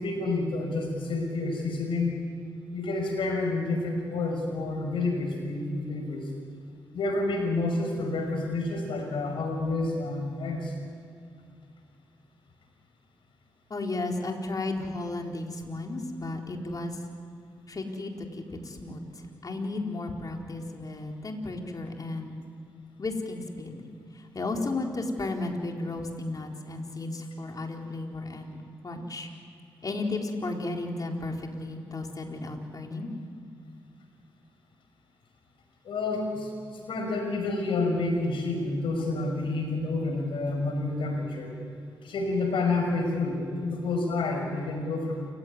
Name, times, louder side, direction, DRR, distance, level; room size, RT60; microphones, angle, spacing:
voice 1, 0.0-2.2 2.7-6.2 6.9-10.7 35.8-36.5 36.9-41.5 42.0-45.3, left 2 dB, 75° left, 3 dB, 6.0 m, -29 dB
voice 2, 13.7-17.0 17.7-19.0 19.4-22.4 23.0-23.8 24.1-28.6 28.8-29.3 29.8-33.1, left 2 dB, 45° left, 1 dB, 4.3 m, -34 dB
29.0 x 16.5 x 9.8 m, 2.4 s
supercardioid pair, 50°, 9 cm